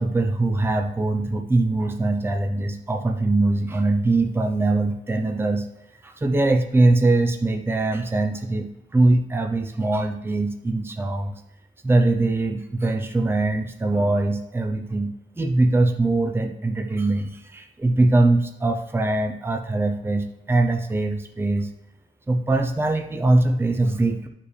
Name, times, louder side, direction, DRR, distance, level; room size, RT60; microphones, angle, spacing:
voice 1, 0.0-5.7 6.0-11.3 11.8-21.7 22.3-24.3, right 2 dB, 15° right, 5 dB, 0.6 m, -22 dB
11.5 x 5.0 x 3.3 m, 0.93 s
wide cardioid pair, 140°, 14 cm